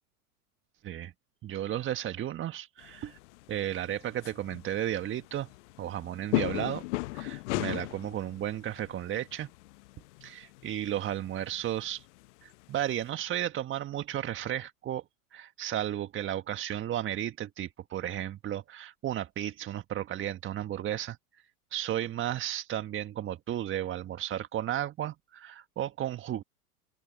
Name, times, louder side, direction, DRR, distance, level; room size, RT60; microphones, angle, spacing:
voice 1, 1.4-3.2 3.5-5.5 5.8-6.8 7.1-9.5 10.2-12.1 12.4-15.0 15.3-21.2 21.7-26.4, right 12 dB, 25° right, 1.6 m, -34 dB
sound 1, 2.8-13.1, left 22 dB, 50° left, 0.9 m, -38 dB
open air
hypercardioid pair, 100°, 44 cm